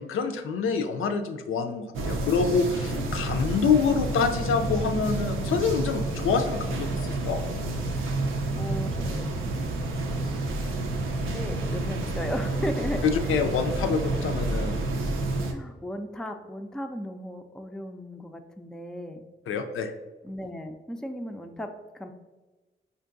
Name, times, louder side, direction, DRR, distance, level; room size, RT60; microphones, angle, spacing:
voice 1, 0.0-7.4 13.3-14.8 19.5-19.9, left 5 dB, 85° left, 6 dB, 0.4 m, -26 dB
sound 1, 1.9-15.5, right 2 dB, 80° right, 0.5 m, -29 dB
voice 2, 8.6-9.3 11.3-13.0 15.5-19.2 20.2-22.1, equal, 5° left, 5 dB, 0.3 m, -36 dB
4.5 x 2.6 x 2.5 m, 1.2 s
cardioid pair, 65°, 21 cm